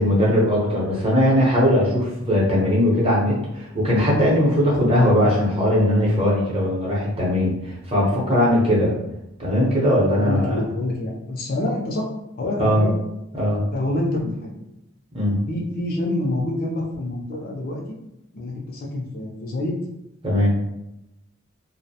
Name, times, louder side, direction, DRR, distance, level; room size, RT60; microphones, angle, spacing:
voice 1, 0.0-8.9 9.4-10.6 12.6-12.8 13.3-13.6 15.1-15.4 20.2-20.5, left 1 dB, 25° right, -5 dB, 0.7 m, -19 dB
voice 2, 10.2-12.1 12.4-12.9 13.7-14.6 15.5-17.8 18.3-19.7, left 1 dB, 45° left, -2 dB, 0.4 m, -26 dB
2.6 x 2.0 x 2.7 m, 0.87 s
head